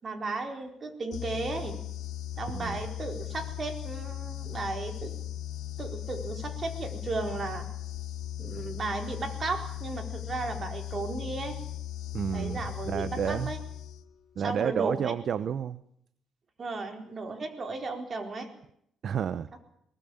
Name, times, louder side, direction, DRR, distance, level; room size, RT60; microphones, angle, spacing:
voice 1, 0.0-1.8 2.4-5.1 5.8-7.7 8.4-11.6 12.3-13.6 14.4-15.1 16.6-18.5, right 3 dB, 40° right, 5 dB, 4.5 m, -35 dB
sound 1, 1.1-14.2, left 12 dB, 75° left, 0.8 m, -38 dB
voice 2, 12.1-12.6 12.9-13.5 14.4-15.8 19.0-19.5, right 8 dB, 60° right, 15 dB, 0.8 m, -30 dB
23.0 x 19.5 x 8.7 m, 0.71 s
cardioid pair, 90°, 0 cm